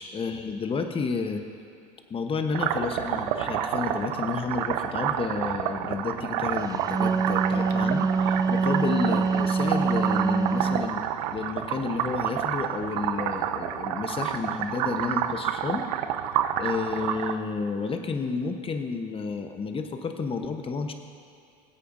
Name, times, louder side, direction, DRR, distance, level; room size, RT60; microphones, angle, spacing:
voice 1, 0.0-1.4 2.1-11.0 11.3-15.9 16.6-20.9, left 4 dB, 25° left, 6 dB, 1.1 m, -31 dB
sound 1, 2.5-17.3, right 10 dB, 70° right, 0.6 m, -29 dB
Wind instrument woodwind instrument, 6.7-10.9, right 4 dB, 20° right, 0.4 m, -25 dB
20.0 x 8.2 x 2.7 m, 2.5 s
hypercardioid pair, 80°, 21 cm